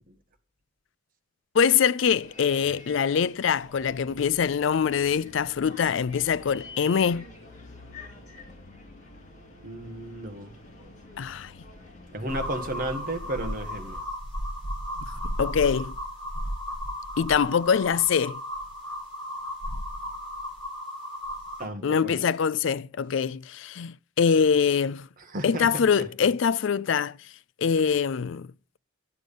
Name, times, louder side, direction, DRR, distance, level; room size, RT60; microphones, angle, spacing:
voice 1, 1.5-7.2 11.2-11.5 15.2-15.9 17.2-18.4 21.8-25.1 25.4-27.2 27.6-28.5, left 7 dB, 65° left, 0.4 m, -24 dB
Bus, 2.1-14.0, left 2 dB, 35° left, 2.7 m, -47 dB
voice 2, 9.6-10.5 12.1-14.0 21.6-22.3 25.2-26.0 27.8-28.0, right 1 dB, 45° right, 1.5 m, -34 dB
sound 1, 12.3-21.6, equal, ahead, 6.6 m, -35 dB
10.0 x 7.7 x 5.3 m
head